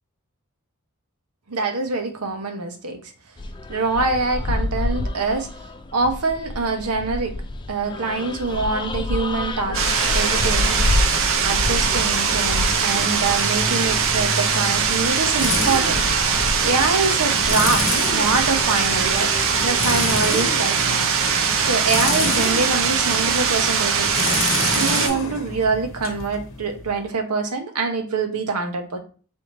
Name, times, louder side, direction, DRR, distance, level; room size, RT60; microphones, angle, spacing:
voice 1, 1.5-3.0 3.7-5.5 5.9-7.4 7.7-10.8 11.4-16.0 16.6-21.1 21.6-24.4 24.7-29.0, right 3 dB, 85° right, 5 dB, 0.9 m, -25 dB
sound 1, 3.4-20.4, left 2 dB, 20° left, 0.4 m, -29 dB
sound 2, 9.7-25.1, right 6 dB, 65° right, 0.6 m, -21 dB
sound 3, 14.6-27.1, left 3 dB, 60° left, 0.9 m, -30 dB
3.4 x 3.0 x 4.2 m, 0.38 s
head